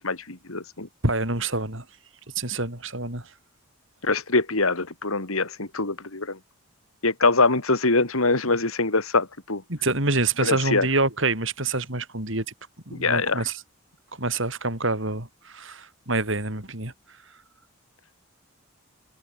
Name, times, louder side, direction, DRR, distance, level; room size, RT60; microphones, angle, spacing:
voice 1, 0.0-0.9 4.0-6.4 7.0-9.6 10.4-10.9 12.9-13.4, left 3 dB, 80° left, 3.0 m, -23 dB
voice 2, 1.0-1.8 2.4-3.3 9.7-12.5 12.9-13.6 14.2-16.9, right 3 dB, 60° right, 5.4 m, -26 dB
head